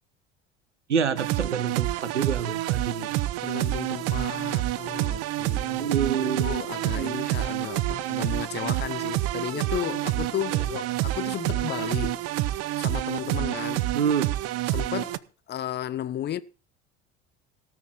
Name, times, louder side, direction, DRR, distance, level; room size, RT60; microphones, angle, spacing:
voice 1, 0.9-3.2 5.8-6.6 6.9-7.3 13.9-14.3, right 7 dB, 85° right, 0.8 m, -27 dB
sound 1, 1.2-15.2, right 15 dB, 45° right, 0.7 m, -28 dB
voice 2, 3.4-12.2 12.8-14.0 14.7-16.4, left 11 dB, 30° left, 0.8 m, -34 dB
17.5 x 6.3 x 5.8 m
figure-of-eight pair, 65°, 35 cm